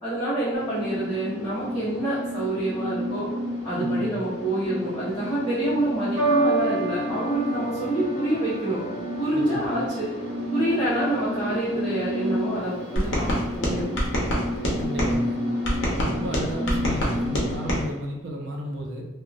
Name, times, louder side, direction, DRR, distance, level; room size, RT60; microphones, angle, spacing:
voice 1, 0.0-3.3 3.6-8.8 9.2-10.1 10.5-14.0, right 1 dB, 25° left, -14 dB, 1.0 m, -27 dB
sound 1, 0.5-17.8, equal, 15° right, 1.1 m, -31 dB
voice 2, 3.7-4.1 9.3-9.6 14.8-15.4 16.0-19.0, equal, 65° right, 0 dB, 0.5 m, -33 dB
sound 2, 6.2-12.7 13.5-13.9, right 2 dB, 35° right, 0.9 m, -30 dB
sound 3, 13.0-15.1 15.6-17.8, equal, 75° left, 0.8 m, -26 dB
2.8 x 2.1 x 2.5 m, 1.0 s
head